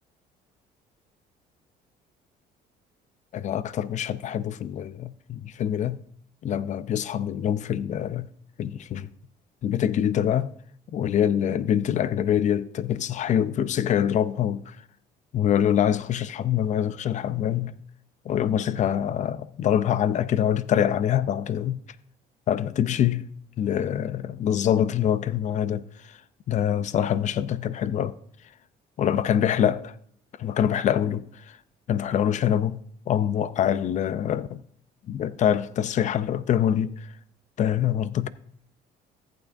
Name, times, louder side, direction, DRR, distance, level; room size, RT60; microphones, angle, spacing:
voice 1, 3.3-6.0 6.4-8.3 8.6-9.1 9.6-10.5 10.9-14.8 15.3-17.8 18.2-21.8 22.5-23.3 23.6-26.2 26.5-28.1 29.0-29.9 30.4-31.6 31.9-34.6 35.0-37.1 37.6-38.3, left 9 dB, 45° left, 0.4 m, -25 dB
14.5 x 8.8 x 2.6 m
cardioid pair, 110°, 17 cm